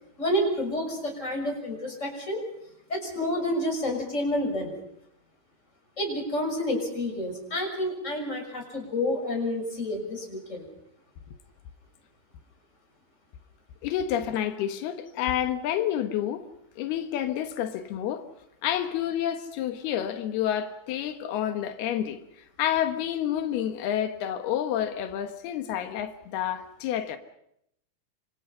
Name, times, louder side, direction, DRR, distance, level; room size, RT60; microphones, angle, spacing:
voice 1, 0.2-2.4 2.9-4.7 6.0-10.6, left 1 dB, 20° left, 6.5 m, -29 dB
voice 2, 13.8-16.5 16.8-18.3 18.6-27.2, left 10 dB, 90° left, 3.4 m, -29 dB
27.0 x 26.0 x 5.7 m
omnidirectional pair, 4.4 m